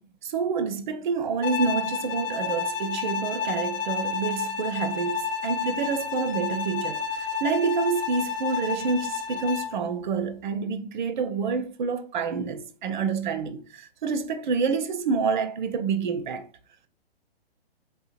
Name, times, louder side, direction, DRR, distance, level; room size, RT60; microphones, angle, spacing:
voice 1, 0.2-16.5, right 5 dB, 50° right, 0.4 m, -28 dB
Bowed string instrument, 1.4-9.8, left 5 dB, 65° left, 0.5 m, -30 dB
3.5 x 2.7 x 2.5 m
figure-of-eight pair, 125°, 32 cm